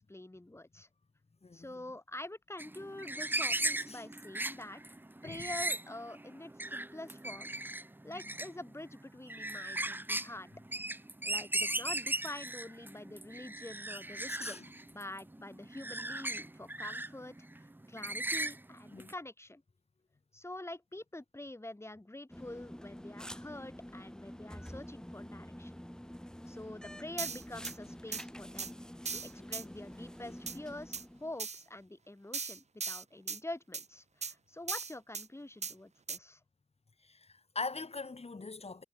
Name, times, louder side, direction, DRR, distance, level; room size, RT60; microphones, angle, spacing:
voice 1, 0.1-0.9 1.5-5.0 5.2-7.5 8.0-10.5 11.2-14.6 14.9-17.4 17.9-19.6 20.3-25.7 26.5-28.8 29.1-36.4, left 1 dB, 20° left, 3.2 m, -46 dB
voice 2, 1.4-1.8 3.7-4.0 5.2-5.5 8.1-8.2 14.3-14.7 18.9-19.1 29.4-29.5 37.0-38.8, left 3 dB, 55° left, 2.9 m, -42 dB
sound 1, 2.6-19.1, right 1 dB, 15° right, 0.8 m, -38 dB
sound 2, 22.3-31.4, equal, 5° left, 3.5 m, -48 dB
sound 3, 27.2-27.8 28.1-28.2 28.6-28.7 29.1-29.6 30.5-30.6 30.9-31.0 31.4-31.6 32.3-33.4 33.7-33.9 34.2-34.3 34.7-35.3 35.6-35.7 36.1-36.2, right 5 dB, 65° right, 0.8 m, -38 dB
wide cardioid pair, 70°, 12 cm